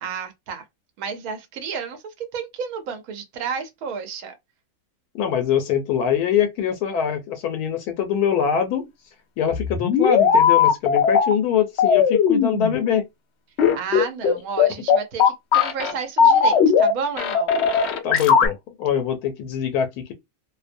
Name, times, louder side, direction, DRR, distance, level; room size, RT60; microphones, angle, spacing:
voice 1, 0.0-0.6 1.0-4.3 13.7-17.5, right 6 dB, 75° right, 1.1 m, -31 dB
voice 2, 5.1-8.9 9.4-13.1 18.0-20.1, left 8 dB, 85° left, 1.1 m, -23 dB
sound 1, 9.5-11.3 11.8-12.8 13.6-15.9 16.2-16.9 17.2-18.5, left 7 dB, 70° left, 0.6 m, -17 dB
2.7 x 2.0 x 2.5 m
omnidirectional pair, 1.6 m